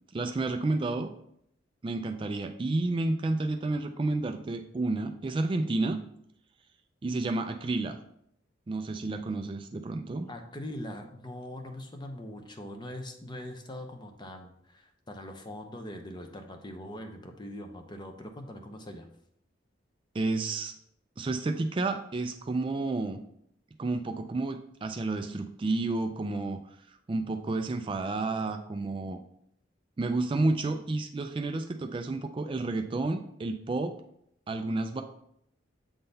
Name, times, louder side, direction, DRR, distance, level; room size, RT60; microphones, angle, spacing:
voice 1, 0.1-1.1 1.8-6.0 7.0-8.0 8.7-10.3 20.1-20.7 21.2-23.2 23.8-26.6 26.9-29.2 30.0-34.0 34.5-35.0, right 2 dB, 25° right, 6 dB, 0.3 m, -30 dB
voice 2, 10.3-19.1, left 1 dB, 25° left, 4 dB, 0.7 m, -42 dB
7.8 x 3.8 x 4.0 m, 0.72 s
head